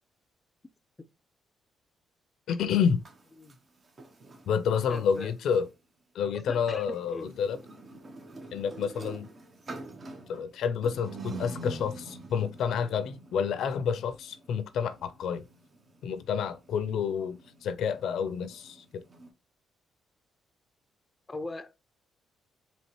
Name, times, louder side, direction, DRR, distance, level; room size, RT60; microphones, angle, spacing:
voice 1, 2.5-3.0 4.5-5.7 6.1-7.6 8.5-9.3 10.3-15.4 16.0-19.0, left 7 dB, 75° left, 0.5 m, -29 dB
sound 1, 2.9-5.7 6.6-19.3, right 3 dB, 40° right, 0.9 m, -46 dB
voice 2, 4.9-5.3 6.5-7.3 21.3-21.8, left 2 dB, 20° left, 0.5 m, -40 dB
4.2 x 2.9 x 3.0 m
cardioid pair, 90°, 0 cm